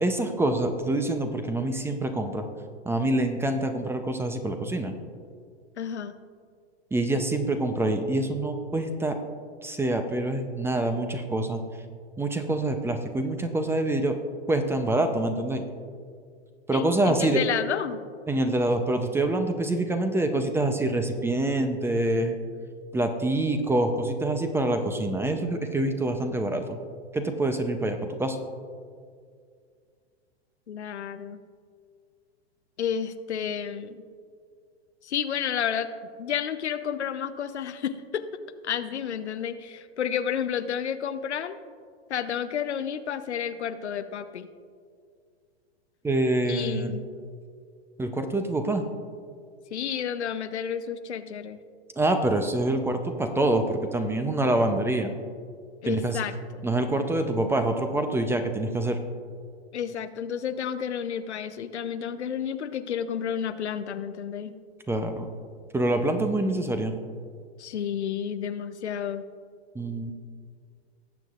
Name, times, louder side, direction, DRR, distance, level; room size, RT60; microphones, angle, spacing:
voice 1, 0.0-2.5 2.8-4.9 6.9-9.2 9.6-11.6 12.2-14.2 14.5-15.6 16.7-17.4 18.3-22.4 22.9-26.8 27.1-28.4 46.0-46.9 48.0-48.8 52.0-55.1 55.9-56.2 56.6-59.0 64.9-65.3 65.7-67.0 69.7-70.1, right 2 dB, 5° right, 7 dB, 0.6 m, -26 dB
voice 2, 5.8-6.1 16.7-18.0 30.7-31.4 32.8-34.0 35.0-35.9 36.2-38.2 38.6-41.6 42.1-44.5 46.5-47.0 49.7-51.6 55.8-56.6 59.7-64.5 67.6-69.2, left 8 dB, 85° left, 11 dB, 0.7 m, -31 dB
18.5 x 7.6 x 2.5 m, 2.1 s
hypercardioid pair, 110°, 33 cm